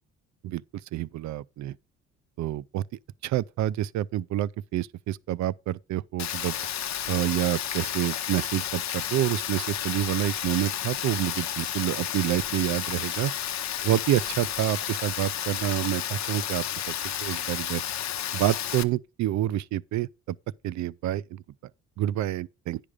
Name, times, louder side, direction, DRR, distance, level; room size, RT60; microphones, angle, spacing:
voice 1, 0.9-1.7 2.4-2.8 3.2-6.6 7.1-13.3 13.8-16.9 17.2-17.8 18.3-20.4 20.6-21.4 22.0-22.8, right 13 dB, 70° right, 0.5 m, -28 dB
Rain, 6.2-18.8, left 10 dB, 65° left, 0.8 m, -32 dB
9.8 x 5.1 x 5.0 m
cardioid pair, 90°, 30 cm